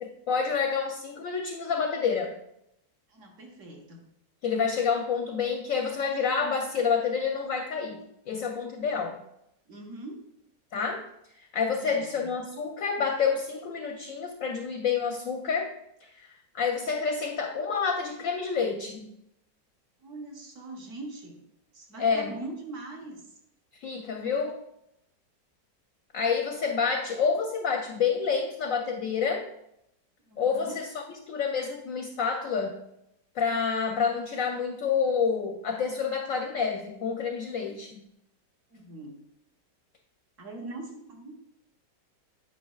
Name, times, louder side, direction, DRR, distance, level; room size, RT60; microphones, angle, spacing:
voice 1, 0.0-2.4 4.4-9.2 10.7-11.1 11.5-15.7 16.0-19.1 22.0-22.3 23.8-24.6 26.1-29.5 30.4-30.9 31.3-32.8 33.4-38.0, left 6 dB, 70° left, 3 dB, 0.8 m, -28 dB
voice 2, 3.1-4.1 8.8-9.0 9.7-10.2 11.7-12.3 20.0-21.4 21.7-23.4 30.2-30.8 38.7-39.2 40.4-41.4, right 2 dB, 50° right, 1 dB, 1.4 m, -42 dB
8.3 x 5.3 x 2.4 m, 0.79 s
omnidirectional pair, 1.9 m